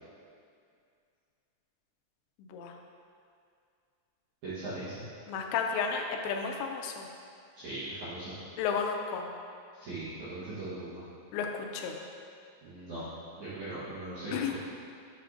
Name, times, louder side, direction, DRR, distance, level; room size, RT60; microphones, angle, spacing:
voice 1, 4.4-4.9 7.6-8.3 9.8-11.0 12.6-13.0 13.4-14.6, right 2 dB, 75° right, -12 dB, 1.7 m, -39 dB
voice 2, 5.3-7.1 8.6-9.3 11.3-11.9 14.3-14.6, left 6 dB, 90° left, 3 dB, 2.9 m, -32 dB
7.3 x 6.9 x 2.5 m, 2.3 s
omnidirectional pair, 5.1 m